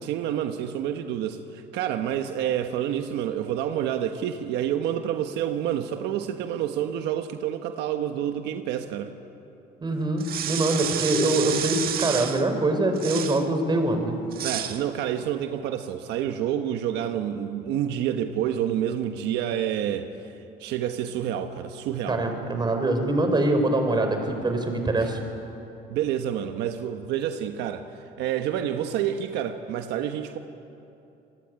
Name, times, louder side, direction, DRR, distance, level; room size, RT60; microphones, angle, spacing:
voice 1, 0.0-9.1 14.4-20.1 20.6-22.2 25.9-27.8 28.2-30.4, right 10 dB, 85° right, 7 dB, 1.3 m, -28 dB
voice 2, 9.8-14.2 22.1-25.2, right 2 dB, 25° right, 5 dB, 4.7 m, -24 dB
sound 1, 10.2-12.4 13.0-13.4 14.3-14.8, right 10 dB, 60° right, 1.8 m, -30 dB
27.5 x 20.5 x 9.6 m, 2.8 s
cardioid pair, 110°, 17 cm